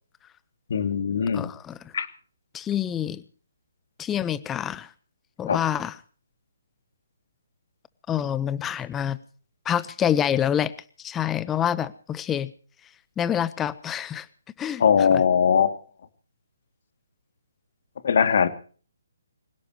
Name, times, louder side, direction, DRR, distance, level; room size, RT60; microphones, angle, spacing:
voice 1, 0.7-1.5 1.9-2.1 5.5-5.6 14.8-15.8 18.0-18.5, left 7 dB, 55° left, 9 dB, 2.7 m, -20 dB
voice 2, 1.3-1.9 2.5-3.2 4.0-4.9 5.4-6.0 8.1-9.2 9.6-10.7 11.0-12.5 13.2-14.3 14.6-15.2, left 9 dB, 15° left, 16 dB, 1.1 m, -27 dB
26.0 x 17.5 x 3.1 m, 0.41 s
figure-of-eight pair, 140°, 0 cm